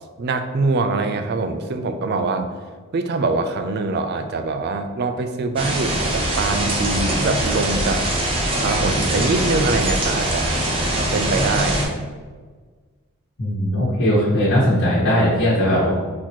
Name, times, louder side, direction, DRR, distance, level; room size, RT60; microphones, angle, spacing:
voice 1, 0.2-2.5 2.9-8.1 8.6-10.5 11.1-11.9, right 3 dB, 45° right, 8 dB, 0.3 m, -23 dB
sound 1, 5.6-11.8, right 1 dB, 25° right, 0.7 m, -22 dB
voice 2, 13.4-15.9, equal, 55° left, -9 dB, 1.3 m, -18 dB
4.0 x 2.9 x 4.5 m, 1.5 s
head